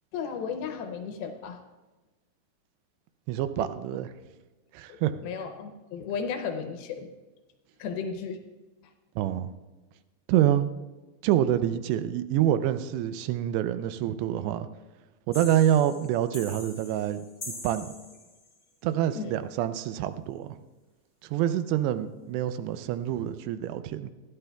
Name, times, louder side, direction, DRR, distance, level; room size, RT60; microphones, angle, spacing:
voice 1, 0.1-1.6 3.6-3.7 4.9-5.0 5.2-7.1 7.8-8.4 19.1-19.4, left 6 dB, 75° left, 6 dB, 2.5 m, -34 dB
voice 2, 3.3-4.1 4.7-5.1 9.2-9.5 10.3-10.7 11.2-14.7 15.3-17.2 17.5-17.9 18.8-20.6 21.3-24.1, right 11 dB, 85° right, 11 dB, 2.7 m, -26 dB
sound 1, 15.3-18.6, left 2 dB, 20° left, 1.7 m, -43 dB
20.5 x 13.5 x 2.3 m, 1.2 s
omnidirectional pair, 4.8 m